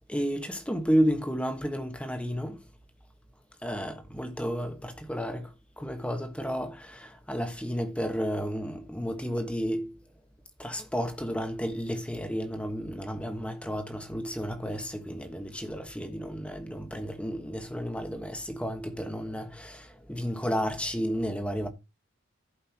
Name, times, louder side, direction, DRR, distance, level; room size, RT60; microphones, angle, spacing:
voice 1, 0.1-2.7 3.6-10.0 10.6-21.7, equal, 5° left, 1.3 m, -32 dB
16.0 x 5.4 x 2.9 m
head